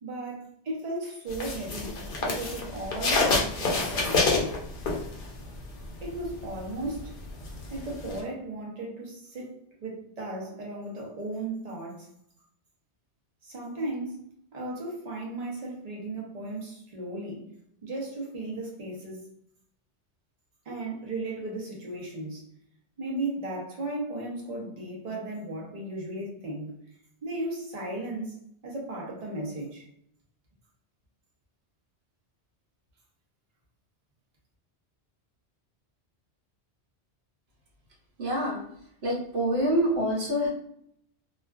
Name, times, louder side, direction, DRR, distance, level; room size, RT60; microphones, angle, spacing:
voice 1, 0.0-4.5 6.0-7.1 7.7-12.1 13.4-14.2 14.5-17.5 17.8-19.3 20.7-22.5 23.0-26.7 27.2-28.4 28.6-29.8, right 2 dB, 40° right, -2 dB, 0.7 m, -35 dB
sound 1, 1.3-5.5 5.8-8.2, left 3 dB, 60° left, 0.7 m, -27 dB
voice 2, 38.2-38.6 39.0-40.5, equal, 70° right, -3 dB, 1.1 m, -26 dB
2.4 x 2.3 x 2.3 m, 0.71 s
omnidirectional pair, 1.1 m